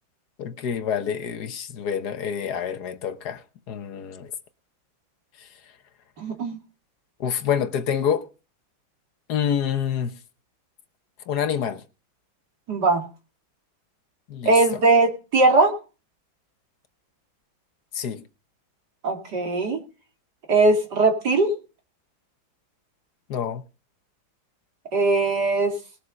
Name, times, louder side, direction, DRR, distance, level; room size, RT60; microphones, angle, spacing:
voice 1, 0.4-4.3 7.2-8.3 9.3-10.1 11.3-11.8 14.3-14.5 17.9-18.2 23.3-23.6, left 8 dB, 60° left, 1.4 m, -27 dB
voice 2, 6.2-6.6 12.7-13.0 14.4-15.7 19.0-19.8 20.5-21.5 24.9-25.7, right 3 dB, 55° right, 2.9 m, -20 dB
19.5 x 7.2 x 5.3 m
omnidirectional pair, 2.1 m